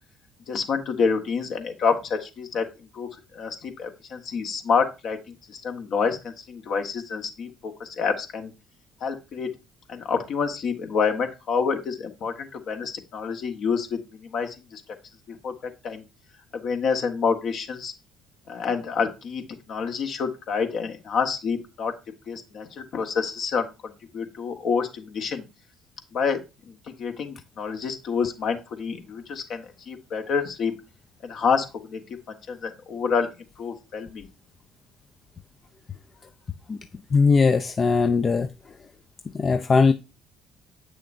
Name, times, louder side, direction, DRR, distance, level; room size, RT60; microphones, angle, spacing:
voice 1, 0.5-2.6 2.9-3.1 3.3-5.2 5.5-8.5 9.0-9.5 9.9-14.8 15.3-15.5 15.8-16.0 16.6-17.9 18.5-19.4 19.7-21.9 22.3-25.4 26.1-26.4 27.0-30.7 31.2-32.0 32.5-33.3 33.6-34.2, left 5 dB, 60° left, 1.3 m, -27 dB
voice 2, 37.1-38.5 39.3-39.9, left 4 dB, 40° left, 0.5 m, -19 dB
8.1 x 6.4 x 2.6 m
hypercardioid pair, 55°, 0 cm